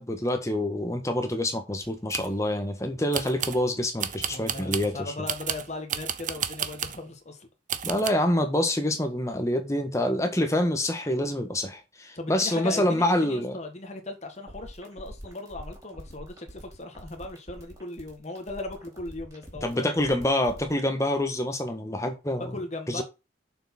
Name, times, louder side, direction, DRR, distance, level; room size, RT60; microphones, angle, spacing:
voice 1, 0.0-5.0 7.8-13.5 19.6-22.5 22.9-23.0, left 1 dB, 15° left, 1.5 m, -26 dB
sound 1, 1.8-2.4 3.1-3.6 4.0-4.9 5.3-7.0 7.7-8.1, right 9 dB, 40° right, 0.7 m, -32 dB
voice 2, 4.3-7.5 12.1-19.9 22.5-23.0, left 2 dB, 35° left, 1.7 m, -38 dB
sound 2, 14.3-20.7, equal, 15° right, 4.1 m, -45 dB
6.9 x 6.1 x 5.9 m
head